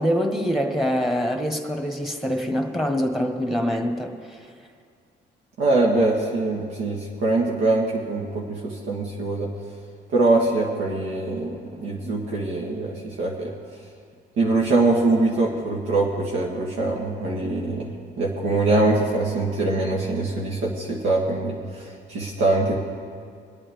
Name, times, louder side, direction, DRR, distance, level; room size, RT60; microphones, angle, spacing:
voice 1, 0.0-4.4, equal, ahead, 4 dB, 1.5 m, -24 dB
voice 2, 5.6-9.5 10.1-13.5 14.4-22.7, right 2 dB, 85° right, -3 dB, 1.5 m, -23 dB
23.5 x 8.6 x 3.5 m, 2.2 s
cardioid pair, 90°, 20 cm